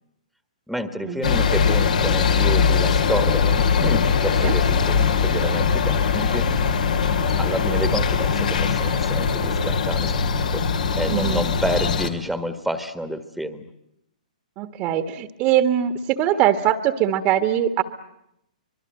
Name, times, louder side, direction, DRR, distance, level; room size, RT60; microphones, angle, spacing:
voice 1, 0.7-6.5 7.4-10.6 10.9-13.6, equal, ahead, 10 dB, 1.6 m, -29 dB
sound 1, 1.2-12.1, left 5 dB, 70° left, 2.6 m, -21 dB
voice 2, 11.0-11.4 14.6-17.8, right 11 dB, 35° right, 10 dB, 1.5 m, -22 dB
25.0 x 22.5 x 9.0 m, 0.79 s
figure-of-eight pair, 120°, 4 cm